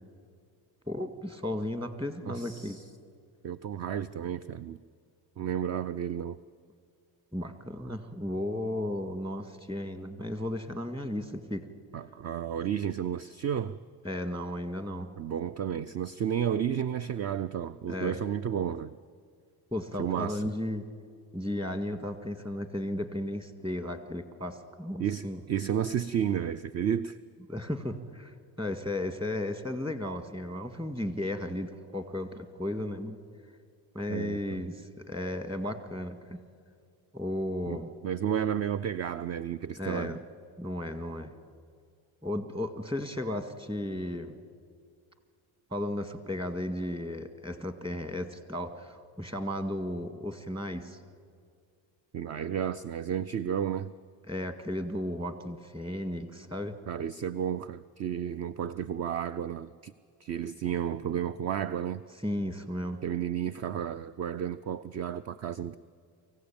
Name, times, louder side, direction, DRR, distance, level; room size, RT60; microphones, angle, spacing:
voice 1, 0.9-2.8 7.3-11.7 14.0-15.1 17.9-18.2 19.7-20.9 21.3-25.4 27.5-33.2 33.9-36.4 37.1-37.9 39.8-40.2 40.6-41.3 42.2-44.3 45.7-51.0 54.3-56.8 62.2-63.0, left 1 dB, 10° right, 9 dB, 1.8 m, -34 dB
voice 2, 2.3-2.8 3.4-4.8 5.4-6.4 11.9-13.8 15.2-18.9 20.0-20.5 25.0-27.2 34.1-34.6 37.7-37.8 38.0-40.2 52.1-53.9 56.9-59.9 60.2-62.0 63.0-65.8, right 9 dB, 35° right, 15 dB, 0.5 m, -32 dB
24.0 x 15.5 x 8.7 m, 2.2 s
cardioid pair, 110°, 45 cm